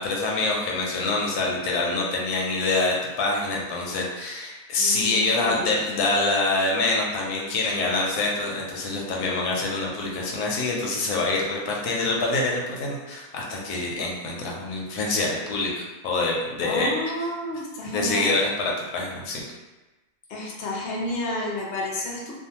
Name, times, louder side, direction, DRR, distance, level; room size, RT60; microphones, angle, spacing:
voice 1, 0.0-17.1 17.9-19.4, left 2 dB, 85° left, -2 dB, 1.1 m, -25 dB
voice 2, 4.8-5.8 16.6-18.4 20.3-22.3, left 1 dB, 55° left, -3 dB, 0.7 m, -31 dB
2.5 x 2.3 x 2.8 m, 1.1 s
omnidirectional pair, 1.6 m